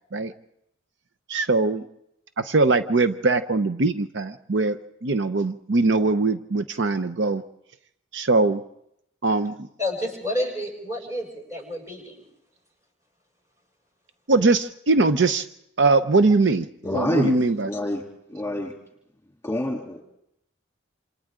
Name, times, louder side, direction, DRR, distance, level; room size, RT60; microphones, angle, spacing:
voice 1, 1.3-1.8 2.4-7.4 8.1-8.6 9.2-9.6 14.3-15.5 15.8-16.7 16.9-17.7, right 3 dB, 65° right, 10 dB, 0.7 m, -21 dB
voice 2, 9.8-12.3, left 1 dB, 15° right, 0 dB, 6.6 m, -30 dB
voice 3, 16.8-17.3 17.6-18.0 18.3-18.7 19.4-20.0, left 1 dB, 15° left, 0 dB, 3.0 m, -26 dB
28.0 x 27.5 x 3.7 m, 0.79 s
head